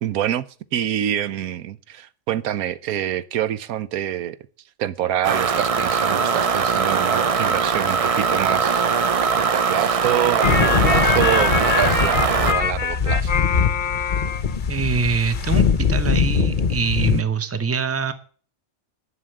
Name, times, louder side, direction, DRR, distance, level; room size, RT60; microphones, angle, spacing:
voice 1, 0.0-0.4 0.7-4.4 4.8-13.3, right 11 dB, 85° right, 1.2 m, -26 dB
sound 1, 5.2-12.5, right 5 dB, 55° right, 0.3 m, -21 dB
sound 2, 10.4-17.2, left 6 dB, 40° left, 0.9 m, -21 dB
voice 2, 14.7-18.1, right 5 dB, 10° right, 0.8 m, -24 dB
11.0 x 6.4 x 8.6 m
omnidirectional pair, 1.5 m